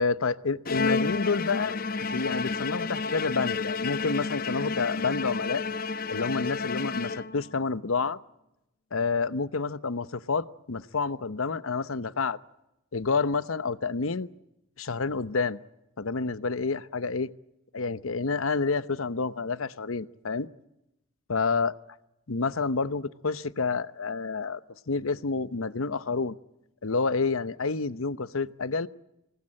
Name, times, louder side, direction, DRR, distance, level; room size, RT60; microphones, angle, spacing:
voice 1, 0.0-5.6 6.1-8.2 8.9-12.4 12.9-14.3 14.8-15.6 16.0-17.3 17.7-20.5 21.3-21.7 22.3-24.6 24.9-26.4 26.8-28.9, left 4 dB, 85° left, 15 dB, 0.9 m, -29 dB
Bowed string instrument, 0.6-7.6, left 4 dB, 45° left, 0.9 m, -31 dB
25.5 x 20.0 x 8.7 m, 0.90 s
head